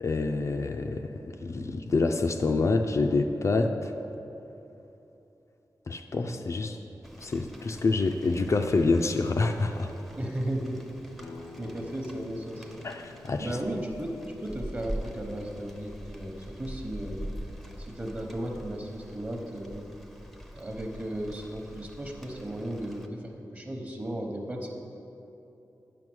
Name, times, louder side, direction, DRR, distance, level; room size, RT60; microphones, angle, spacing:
voice 1, 0.0-3.9 5.9-6.8 7.2-9.9 12.8-13.6, left 3 dB, 45° left, 5 dB, 0.4 m, -27 dB
Rain, 7.0-23.1, equal, ahead, 0.6 m, -44 dB
voice 2, 10.1-10.8 11.6-12.8 13.4-17.3 17.8-19.9 20.5-24.7, right 1 dB, 25° right, 2 dB, 1.0 m, -35 dB
sound 1, 11.2-16.8, left 3 dB, 85° left, 0.7 m, -50 dB
9.2 x 5.7 x 6.2 m, 2.9 s
wide cardioid pair, 140°, 7 cm